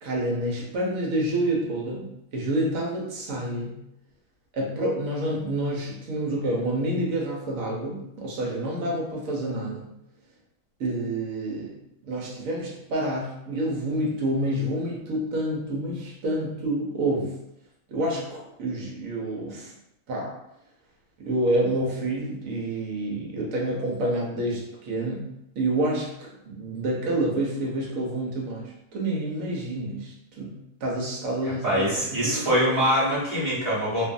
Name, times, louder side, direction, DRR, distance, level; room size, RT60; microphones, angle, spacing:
voice 1, 0.0-3.8 4.5-9.9 10.8-11.8 12.0-17.3 17.9-19.7 20.1-20.3 21.2-30.6 30.8-32.5, right 1 dB, 65° right, -3 dB, 1.1 m, -28 dB
voice 2, 31.4-34.1, equal, 30° right, -8 dB, 0.9 m, -24 dB
2.6 x 2.4 x 2.5 m, 0.83 s
omnidirectional pair, 1.7 m